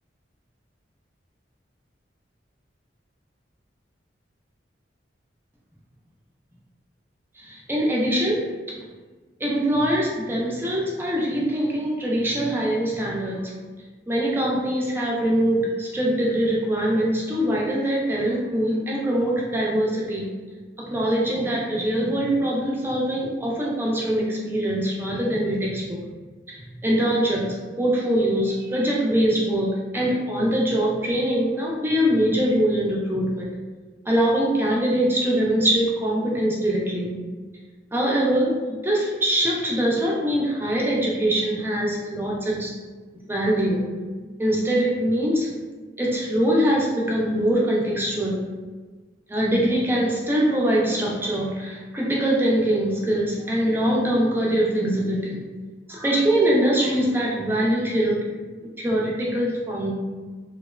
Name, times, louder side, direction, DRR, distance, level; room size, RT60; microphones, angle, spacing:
voice 1, 7.4-8.8 9.4-13.5 14.1-20.3 20.8-26.0 26.5-33.5 34.1-37.1 37.9-42.8 43.3-43.8 44.4-45.5 46.0-48.4 49.3-55.4 55.9-58.2 58.8-59.9, right 1 dB, 10° right, -3 dB, 0.4 m, -23 dB
2.8 x 2.1 x 2.2 m, 1.4 s
head